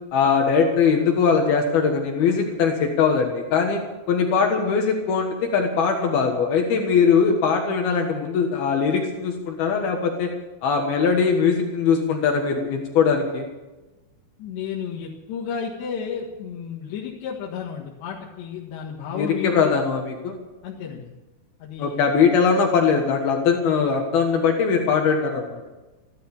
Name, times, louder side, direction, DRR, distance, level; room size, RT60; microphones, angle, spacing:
voice 1, 0.1-3.8 4.1-10.3 10.6-13.5 19.1-20.4 21.8-25.6, left 6 dB, 70° left, 2 dB, 3.2 m, -21 dB
voice 2, 14.4-19.6 20.6-21.1 21.6-22.0, left 7 dB, 85° left, -4 dB, 3.9 m, -32 dB
15.5 x 12.5 x 7.1 m, 1.1 s
omnidirectional pair, 4.9 m